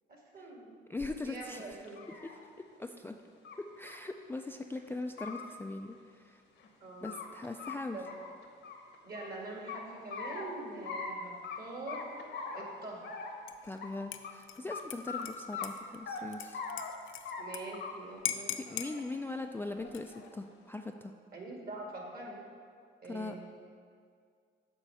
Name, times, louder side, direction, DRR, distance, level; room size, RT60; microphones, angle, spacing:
voice 1, 0.1-0.7 1.2-2.0 6.8-7.2 7.9-8.1 9.0-12.0 12.5-13.1 17.4-18.8 21.3-22.4 23.0-23.4, right 2 dB, 50° right, -1 dB, 1.9 m, -44 dB
voice 2, 0.9-1.8 2.2-2.4 2.8-3.1 3.6-6.4 7.0-8.0 13.6-16.6 18.5-21.1 23.1-23.4, left 2 dB, 10° left, 4 dB, 0.3 m, -40 dB
sound 1, 1.0-1.1 1.7-2.4 3.4-3.6 3.9-4.0 4.4-4.5 5.0-5.5 6.6-7.3 7.6-7.8 8.1-9.3 9.7-10.5 10.9-11.1 11.4-11.6 11.9-12.7 13.0-13.4 13.8-13.9 14.2-14.3 14.7-14.8 15.1-15.2 15.5-16.2 16.5-16.9 17.3-17.4 17.7-18.2 18.5-19.0 19.8-20.3, left 5 dB, 65° left, 1.0 m, -41 dB
Dishes pots and pans / Liquid, 13.5-13.8 14.1-17.6 17.9-18.0 18.3-18.9 19.8-20.3, left 11 dB, 85° left, 0.5 m, -40 dB
7.4 x 4.5 x 6.4 m, 2.1 s
cardioid pair, 90°, 20 cm